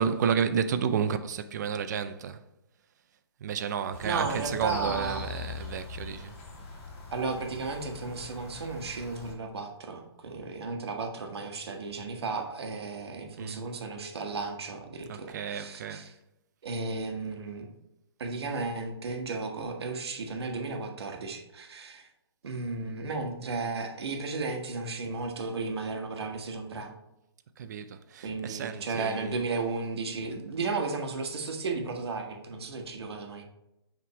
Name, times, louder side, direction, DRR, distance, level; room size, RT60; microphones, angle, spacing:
voice 1, 0.0-2.4 3.4-6.3 13.4-13.7 15.1-16.0 27.6-29.4, right 7 dB, 40° right, 0.5 m, -31 dB
sound 1, 3.9-9.3, left 5 dB, 45° left, 2.4 m, -42 dB
voice 2, 4.0-5.3 7.1-16.1 16.6-17.7 18.2-22.1 22.4-26.9 28.2-33.4, right 3 dB, 70° right, 1.4 m, -34 dB
5.9 x 3.7 x 4.6 m
hypercardioid pair, 155°, 14 cm